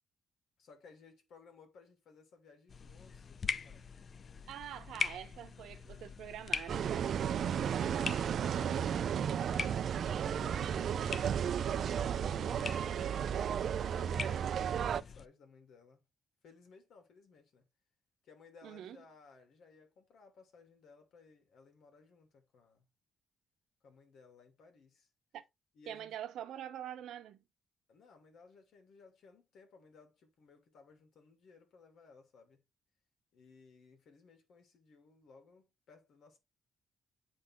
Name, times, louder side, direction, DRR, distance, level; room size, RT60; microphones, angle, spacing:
voice 1, 0.6-3.9 7.6-8.3 8.6-9.6 10.2-16.0 16.4-17.6 18.2-22.9 23.8-25.1 25.7-26.2 27.9-32.6 33.3-36.4, left 4 dB, 65° left, 2.7 m, -60 dB
sound 1, 2.7-15.3, left 5 dB, 35° left, 0.4 m, -43 dB
voice 2, 4.5-8.1 18.6-19.0 25.3-25.4 25.9-27.4, right 11 dB, 80° right, 1.0 m, -45 dB
sound 2, 6.7-15.0, right 8 dB, 55° right, 0.4 m, -33 dB
8.6 x 3.6 x 3.7 m
cardioid pair, 135°, 0 cm